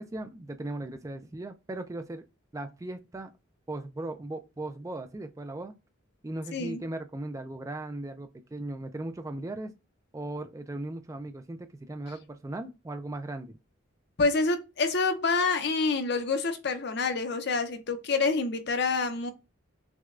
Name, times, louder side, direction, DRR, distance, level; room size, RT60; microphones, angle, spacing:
voice 1, 0.0-2.2 2.5-3.3 3.7-5.7 6.2-9.7 10.1-13.6, right 2 dB, 15° right, 0.3 m, -38 dB
voice 2, 14.2-19.3, left 4 dB, 55° left, 0.6 m, -27 dB
6.0 x 2.2 x 2.4 m
head